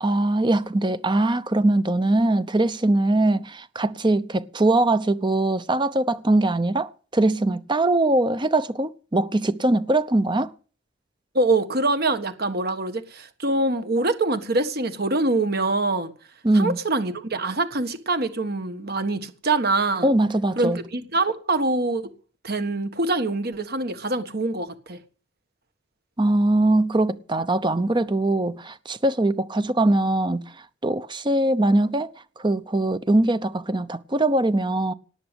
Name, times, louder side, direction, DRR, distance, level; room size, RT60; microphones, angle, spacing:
voice 1, 0.0-10.5 16.4-16.8 20.0-20.8 26.2-30.5 30.8-32.1 32.4-34.9, right 2 dB, 25° right, 0.8 m, -21 dB
voice 2, 11.3-16.1 16.5-20.1 20.6-22.1 22.4-25.0, right 2 dB, 50° right, 1.5 m, -24 dB
18.5 x 6.8 x 8.0 m
head